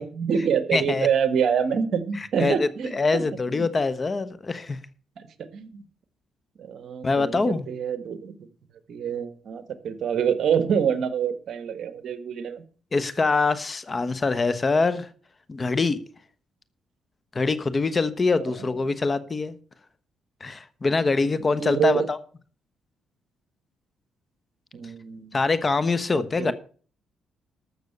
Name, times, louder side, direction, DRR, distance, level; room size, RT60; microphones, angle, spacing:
voice 1, 0.0-3.2 3.5-3.7 5.2-5.9 6.6-8.3 8.9-12.6 21.2-22.1 24.7-25.4 26.1-26.5, right 7 dB, 65° right, 12 dB, 1.6 m, -26 dB
voice 2, 0.7-1.1 2.2-4.8 7.0-7.7 12.9-15.1 15.5-16.0 17.3-19.6 20.4-22.2 25.3-26.5, left 3 dB, 30° left, 14 dB, 1.1 m, -24 dB
13.5 x 6.6 x 6.7 m, 0.42 s
cardioid pair, 90°, 0 cm